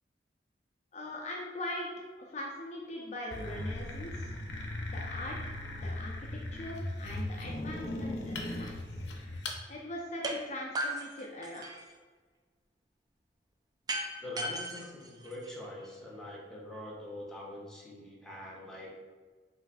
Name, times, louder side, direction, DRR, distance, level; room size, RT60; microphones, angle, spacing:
voice 1, 0.9-4.3 4.9-8.8 9.7-11.7, left 1 dB, 40° left, -2 dB, 0.5 m, -41 dB
sound 1, 3.3-9.6, left 1 dB, 85° left, 0.6 m, -38 dB
sound 2, 10.2-10.4 10.7-11.9 13.9-15.9, right 1 dB, 25° right, 0.4 m, -36 dB
voice 2, 14.2-18.9, left 1 dB, 5° left, -5 dB, 0.8 m, -44 dB
5.0 x 3.2 x 2.5 m, 1.4 s
head